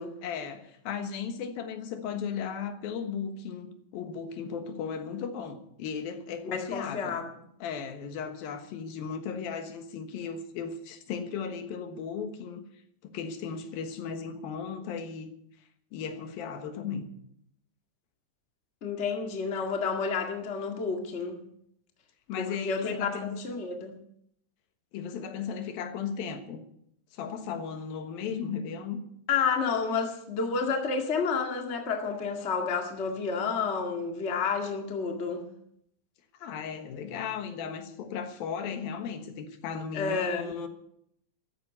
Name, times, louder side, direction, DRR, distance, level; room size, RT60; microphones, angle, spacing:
voice 1, 0.2-7.2 7.6-12.6 13.1-15.3 15.9-17.1 22.3-23.4 24.9-26.6 27.1-29.0 36.4-40.7, left 6 dB, 80° left, 3.2 m, -36 dB
voice 2, 6.4-7.2 18.8-21.4 22.4-23.9 29.3-35.4 39.9-40.5, left 5 dB, 25° left, 1.5 m, -30 dB
14.0 x 9.2 x 9.5 m
omnidirectional pair, 4.2 m